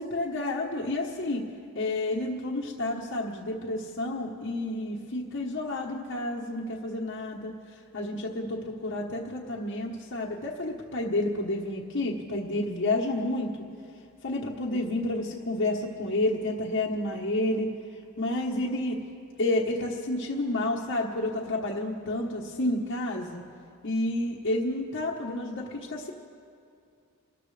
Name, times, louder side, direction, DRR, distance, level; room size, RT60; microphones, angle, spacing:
voice 1, 0.0-1.4 1.7-13.5 14.2-17.7 18.2-19.0 19.4-23.4 23.8-26.1, left 2 dB, 55° left, -5 dB, 1.3 m, -30 dB
28.0 x 13.5 x 3.3 m, 2.5 s
head